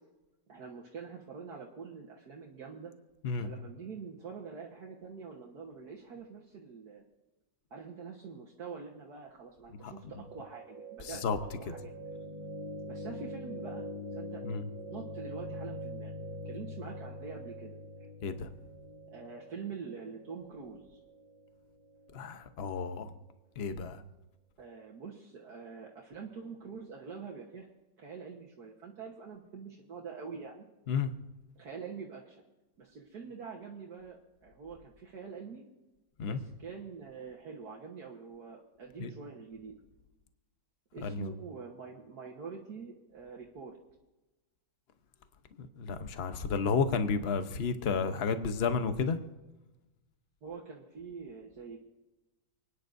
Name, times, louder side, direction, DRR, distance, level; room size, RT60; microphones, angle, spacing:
voice 1, 0.5-2.9 3.4-7.0 7.7-11.2 11.6-11.9 12.9-14.4 14.9-17.8 19.1-21.0 24.6-27.7 28.0-30.7 31.6-32.4 32.8-35.7 36.2-39.8 40.9-43.8 50.4-51.8, right 5 dB, 60° right, -2 dB, 1.8 m, -45 dB
sound 1, 10.1-22.2, equal, 20° right, 1.5 m, -44 dB
voice 2, 11.0-11.4 14.4-14.6 18.2-18.5 22.1-23.1 23.6-24.0 30.9-31.1 36.2-36.4 39.0-39.1 41.0-41.3 45.6-49.2, left 5 dB, 45° left, 9 dB, 0.9 m, -32 dB
29.5 x 10.0 x 2.6 m, 1.1 s
omnidirectional pair, 2.0 m